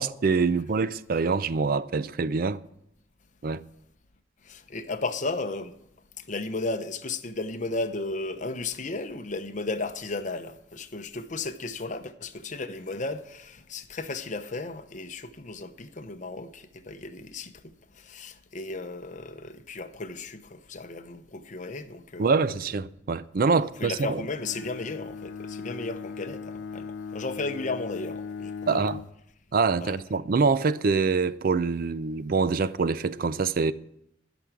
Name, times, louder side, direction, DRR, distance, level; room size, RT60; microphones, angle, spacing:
voice 1, 0.0-2.6 3.4-3.6 22.2-24.1 28.7-29.0 29.5-33.7, right 4 dB, 50° right, 0.4 m, -25 dB
voice 2, 4.4-5.7 6.2-17.5 17.9-22.4 23.8-28.9 29.8-30.0, left 3 dB, 45° left, 0.8 m, -34 dB
Bowed string instrument, 24.3-29.2, left 5 dB, 75° left, 0.4 m, -38 dB
12.5 x 6.1 x 8.2 m
head